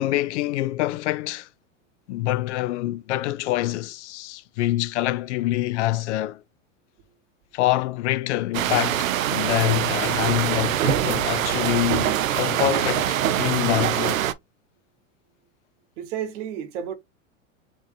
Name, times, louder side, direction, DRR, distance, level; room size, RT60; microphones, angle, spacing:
voice 1, 0.0-1.5 2.1-6.4 7.5-14.2, left 15 dB, 60° left, 0.5 m, -25 dB
sound 1, 8.5-14.3, right 11 dB, 75° right, 0.7 m, -24 dB
voice 2, 16.0-16.9, right 9 dB, 60° right, 1.3 m, -31 dB
4.3 x 3.0 x 3.1 m
hypercardioid pair, 95°, 40 cm